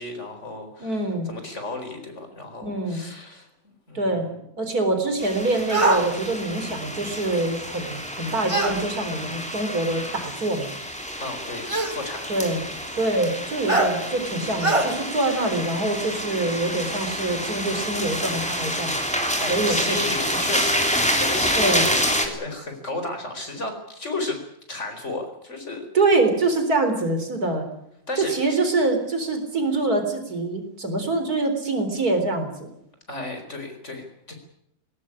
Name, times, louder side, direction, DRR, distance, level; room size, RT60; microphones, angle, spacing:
voice 1, 0.0-1.0 1.3-4.3 11.2-12.3 19.2-24.4 24.7-25.9 28.1-28.6 33.1-34.3, left 2 dB, 50° left, 5 dB, 4.7 m, -33 dB
voice 2, 0.8-1.3 2.6-3.0 3.9-4.3 4.6-10.7 12.3-12.6 12.9-19.0 19.5-20.3 21.6-21.9 25.9-27.7 28.2-32.7, right 2 dB, 80° right, 7 dB, 4.6 m, -25 dB
sound 1, 5.2-22.3, equal, 5° left, 3.3 m, -28 dB
sound 2, 5.7-6.0 8.5-8.8 10.0-10.1 11.7-12.0 13.7-13.9 14.6-14.9, right 2 dB, 20° right, 2.6 m, -21 dB
20.5 x 18.5 x 9.9 m, 0.76 s
omnidirectional pair, 1.6 m